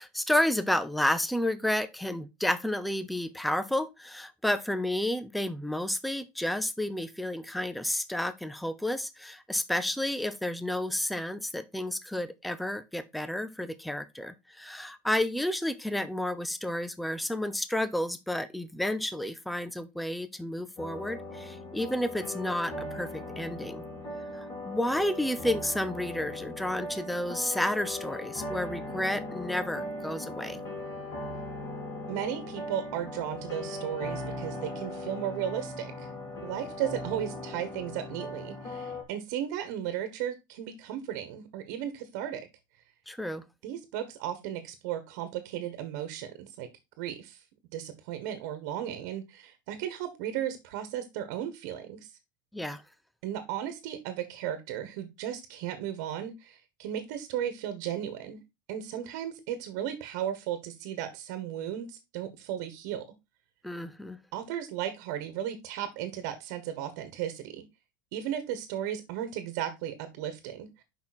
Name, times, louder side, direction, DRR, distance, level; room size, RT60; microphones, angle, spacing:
voice 1, 0.0-23.8 24.3-30.6 43.1-43.4 52.5-52.8 63.6-64.2, left 1 dB, ahead, 0.4 m, -31 dB
sound 1, 20.8-39.0, left 1 dB, 30° left, 2.8 m, -39 dB
voice 2, 32.1-36.1 36.4-42.5 43.6-46.7 47.0-47.4 47.7-52.1 53.2-58.4 58.7-63.0 64.3-67.6 68.1-70.8, right 10 dB, 55° right, 1.3 m, -35 dB
6.4 x 5.5 x 4.2 m
cardioid pair, 180°, 11 cm